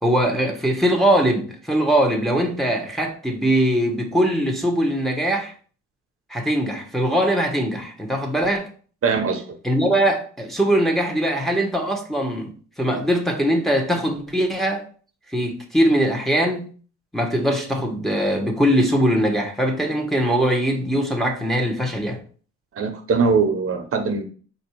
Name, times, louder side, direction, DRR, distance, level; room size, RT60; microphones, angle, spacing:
voice 1, 0.0-5.5 6.3-8.7 9.6-12.5 12.8-14.8 15.3-16.7 17.1-22.2, right 1 dB, ahead, 1.0 m, -21 dB
voice 2, 9.0-9.4 22.7-24.3, right 5 dB, 45° right, 0.8 m, -21 dB
4.6 x 2.6 x 4.4 m
cardioid pair, 90°, 30 cm